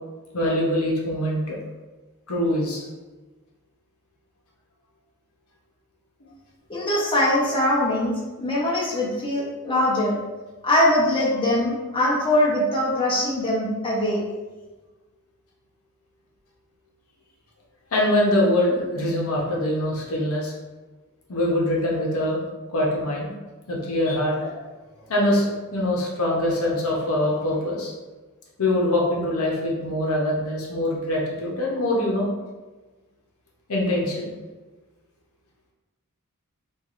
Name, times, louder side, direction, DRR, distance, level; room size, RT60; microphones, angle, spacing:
voice 1, 0.3-1.6 2.3-2.9 17.9-20.5 21.3-22.4 22.7-23.3 23.7-24.5 25.1-27.9 28.6-32.3 33.7-34.4, left 1 dB, 65° left, -3 dB, 0.8 m, -23 dB
voice 2, 6.7-10.2 10.6-14.2, left 1 dB, 25° left, -6 dB, 0.7 m, -22 dB
4.5 x 2.4 x 2.5 m, 1.2 s
head